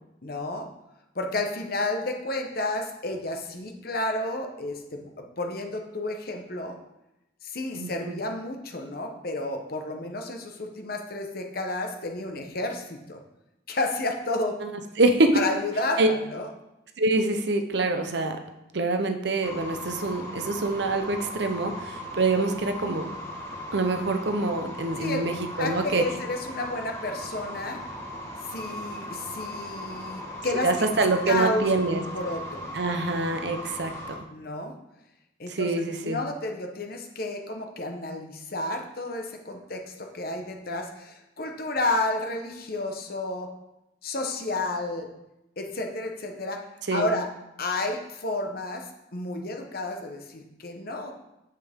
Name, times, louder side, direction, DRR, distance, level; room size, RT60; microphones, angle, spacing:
voice 1, 0.2-0.7 1.1-6.7 7.4-13.2 13.7-14.6 15.3-16.5 25.0-25.2 25.6-27.8 28.5-30.7 31.2-31.7 32.1-32.7 34.3-34.7 35.4-35.7 36.0-43.5 44.0-45.1 45.6-46.6 46.9-47.3 47.6-51.1, left 2 dB, 50° left, 3 dB, 1.0 m, -31 dB
voice 2, 7.7-8.1 14.6-14.7 15.0-15.4 16.0-16.1 17.0-18.4 18.7-23.1 23.7-26.0 30.6-32.0 32.7-34.1 35.5-36.2 46.9-47.1, right 2 dB, 60° right, 6 dB, 0.8 m, -25 dB
sound 1, 19.4-34.2, equal, 15° left, 1.3 m, -38 dB
8.6 x 7.5 x 3.6 m, 0.90 s
head